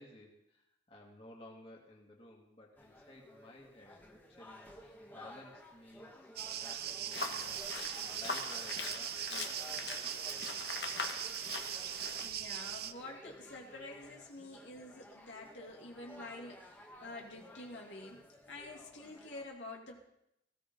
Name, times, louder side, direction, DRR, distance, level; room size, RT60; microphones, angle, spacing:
voice 1, 0.0-11.3, left 1 dB, 30° left, -2 dB, 2.6 m, -56 dB
sound 1, 2.8-19.4, left 1 dB, 10° left, 1.6 m, -55 dB
sound 2, 6.4-12.9, right 11 dB, 55° right, 0.6 m, -40 dB
sound 3, 7.1-12.3, left 4 dB, 65° left, 1.8 m, -42 dB
voice 2, 12.2-20.0, left 2 dB, 80° left, 0 dB, 2.9 m, -48 dB
18.5 x 16.5 x 4.0 m, 0.80 s
head